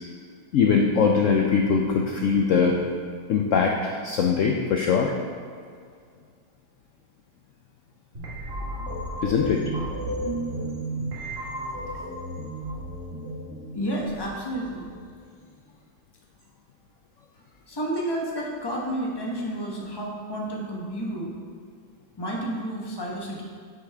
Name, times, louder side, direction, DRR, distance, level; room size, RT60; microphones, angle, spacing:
voice 1, 0.5-2.8 3.3-5.2 9.2-9.7, left 5 dB, 75° left, 2 dB, 0.7 m, -22 dB
sound 1, 8.1-15.0, right 1 dB, 40° right, 1.6 m, -33 dB
voice 2, 13.7-14.9 17.7-21.3 22.2-23.4, right 1 dB, 20° left, -3 dB, 0.9 m, -30 dB
8.1 x 6.3 x 3.4 m, 2.1 s
omnidirectional pair, 1.9 m